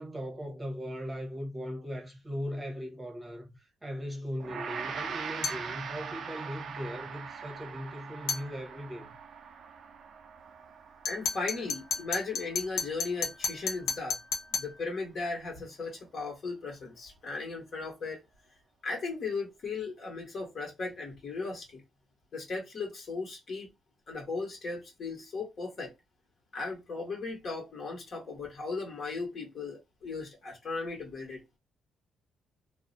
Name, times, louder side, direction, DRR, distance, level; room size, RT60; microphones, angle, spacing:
voice 1, 0.0-9.1, equal, 15° right, 0.8 m, -39 dB
Gong, 4.4-13.8, right 6 dB, 60° right, 0.4 m, -42 dB
sound 1, 5.4-5.7 8.3-8.5 11.0-14.8, left 5 dB, 85° left, 0.5 m, -33 dB
voice 2, 11.0-14.2 14.5-18.2 18.8-21.8 22.3-23.7 24.1-25.9 26.5-31.4, left 3 dB, 55° left, 1.1 m, -37 dB
2.4 x 2.0 x 2.5 m
cardioid pair, 90°, 0 cm